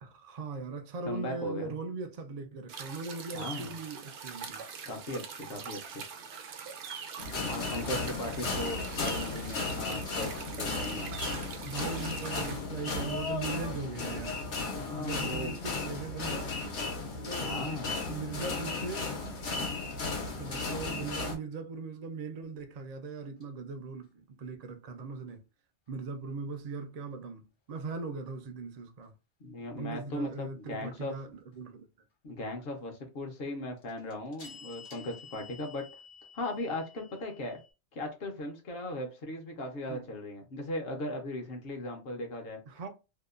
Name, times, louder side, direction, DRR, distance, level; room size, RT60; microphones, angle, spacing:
voice 1, 0.0-4.6 11.6-14.4 15.0-16.5 17.1-17.8 18.1-19.1 20.4-25.4 25.9-29.1 29.8-31.9 39.9-40.1 42.7-42.9, right 4 dB, 60° right, 0.4 m, -39 dB
voice 2, 1.0-1.7 3.3-3.8 4.8-6.0 7.5-11.1 14.7-15.5 17.4-18.0 29.4-31.1 32.2-35.9 36.3-37.6 37.9-42.6, left 1 dB, 65° left, 0.8 m, -38 dB
sound 1, 2.7-12.6, right 6 dB, 80° right, 0.9 m, -43 dB
sound 2, 7.2-21.3, left 3 dB, 85° left, 1.1 m, -35 dB
sound 3, 23.4-23.5 33.8-37.7, left 5 dB, 40° left, 0.4 m, -51 dB
2.8 x 2.1 x 2.3 m
omnidirectional pair, 1.2 m